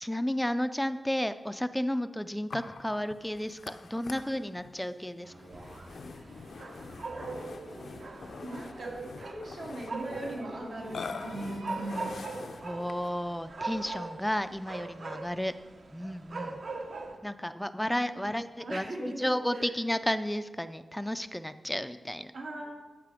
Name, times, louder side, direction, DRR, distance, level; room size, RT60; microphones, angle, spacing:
voice 1, 0.0-5.3 12.6-15.5 15.9-16.6 17.2-22.3, equal, 5° left, 12 dB, 0.3 m, -32 dB
Burping eructation, 2.5-13.2, left 4 dB, 75° left, 0.6 m, -45 dB
sound 1, 5.2-6.2 6.5-7.6, right 2 dB, 50° right, 1.5 m, -52 dB
sound 2, 5.5-17.2, right 3 dB, 65° right, 0.9 m, -41 dB
voice 2, 8.4-8.9 9.2-12.1 18.6-19.7 22.3-22.7, right 1 dB, 85° right, -2 dB, 2.6 m, -39 dB
14.0 x 5.9 x 5.0 m, 1.3 s
wide cardioid pair, 125°, 0 cm